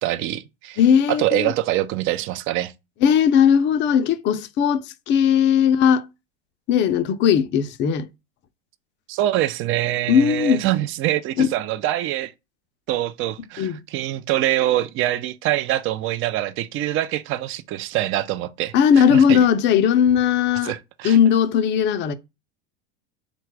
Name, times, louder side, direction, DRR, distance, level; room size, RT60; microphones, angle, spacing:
voice 1, 0.0-0.8 1.1-2.7 9.1-12.3 12.9-19.5 20.6-21.2, right 14 dB, 40° right, 0.4 m, -24 dB
voice 2, 0.8-1.5 3.0-6.1 6.7-8.1 10.1-10.6 11.4-11.5 13.6-13.8 18.7-20.7 21.0-22.1, left 8 dB, 35° left, 0.5 m, -18 dB
3.9 x 2.3 x 4.5 m
supercardioid pair, 105°, 33 cm